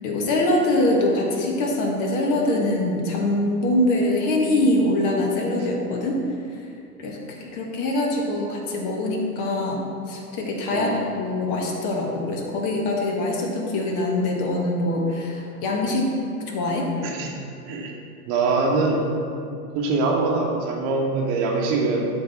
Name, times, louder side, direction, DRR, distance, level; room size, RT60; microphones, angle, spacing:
voice 1, 0.0-6.2 6.6-6.7 7.0-9.8 10.1-10.9 11.2-16.0 16.5-16.9, left 1 dB, 40° left, 0 dB, 1.4 m, -23 dB
voice 2, 18.2-19.1 19.7-22.1, right 3 dB, 45° right, 0 dB, 1.3 m, -23 dB
12.0 x 4.1 x 3.4 m, 2.5 s
hypercardioid pair, 105°, 48 cm